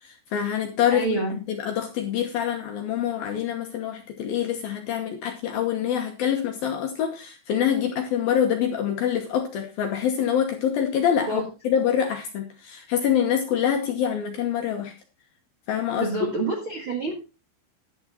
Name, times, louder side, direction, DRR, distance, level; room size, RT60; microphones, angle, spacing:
voice 1, 0.0-14.9 15.7-16.4, left 9 dB, 70° left, 4 dB, 2.4 m, -25 dB
voice 2, 0.9-1.4 11.3-11.4 16.0-17.1, right 3 dB, 55° right, -1 dB, 1.4 m, -27 dB
11.5 x 8.6 x 4.2 m, 0.29 s
omnidirectional pair, 5.5 m